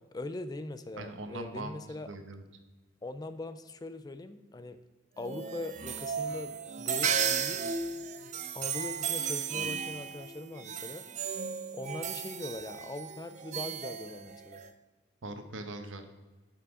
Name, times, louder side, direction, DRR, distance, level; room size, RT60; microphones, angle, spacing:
voice 1, 0.1-2.1 3.0-4.8 5.2-7.6 8.5-11.1 11.7-14.6, left 2 dB, 20° left, 11 dB, 0.4 m, -41 dB
voice 2, 1.0-2.4 15.2-16.1, right 2 dB, 85° right, 7 dB, 1.0 m, -41 dB
sound 1, 5.2-14.7, right 7 dB, 40° right, 0.5 m, -35 dB
11.0 x 5.9 x 3.7 m, 1.2 s
head